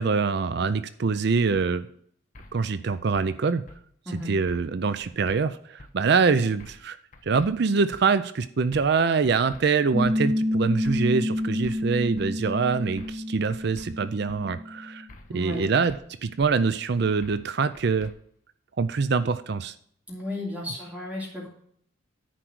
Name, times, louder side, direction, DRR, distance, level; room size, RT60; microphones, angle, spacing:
voice 1, 0.0-1.9 2.5-3.6 4.3-7.0 7.2-15.1 15.3-16.0 16.2-18.1 18.8-19.7, right 5 dB, 55° right, 13 dB, 0.5 m, -24 dB
sound 1, 1.5-1.7 2.4-2.6 2.9-3.3 3.7-3.8 4.5-4.7 5.0-5.4 5.8-5.9 6.6-6.9 7.1-7.5 7.9-8.0 8.7-9.0 9.3-9.6 10.0-10.2 10.8-11.1 11.4-11.8 12.2-12.3 13.0-13.2 13.5-13.9 14.3-14.4 15.1-15.4 15.6-16.0 16.4-16.5 17.2-17.5 17.7-18.1, left 1 dB, 40° left, 0.9 m, -47 dB
Piano, 9.9-15.0, left 1 dB, 10° left, 1.3 m, -28 dB
voice 2, 15.3-15.6 20.1-21.5, left 1 dB, 5° right, -5 dB, 2.9 m, -34 dB
10.0 x 4.6 x 6.2 m, 0.62 s
head